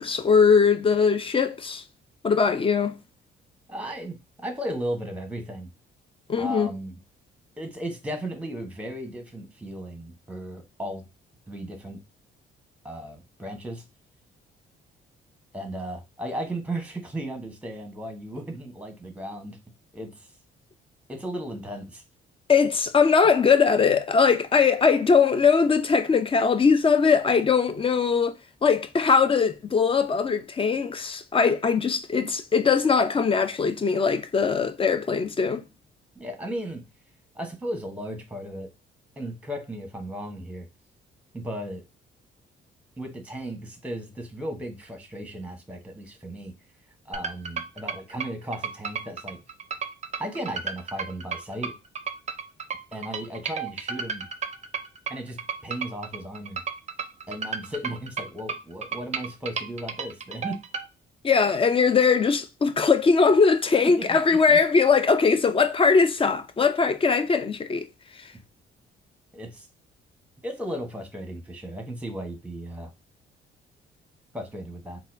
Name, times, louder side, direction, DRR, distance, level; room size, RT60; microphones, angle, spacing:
voice 1, 0.0-1.8 2.2-3.0 6.3-6.7 22.5-28.3 28.6-35.6 61.2-67.9 68.2-68.3, left 5 dB, 25° left, 0.5 m, -21 dB
voice 2, 3.7-5.7 6.4-6.9 7.6-11.0 11.5-12.0 12.8-13.8 15.5-19.6 19.9-20.3 21.1-22.0 36.2-36.8 37.3-38.7 39.2-40.7 41.3-41.8 43.0-46.6 47.0-49.4 50.2-51.8 52.9-54.3 55.1-56.6 57.3-60.6 64.0-64.6 69.3-69.7 70.4-72.9 74.3-75.0, right 1 dB, 5° right, 1.0 m, -35 dB
sound 1, 47.1-60.9, right 6 dB, 35° right, 0.5 m, -33 dB
4.1 x 2.2 x 2.6 m
cardioid pair, 90°, 20 cm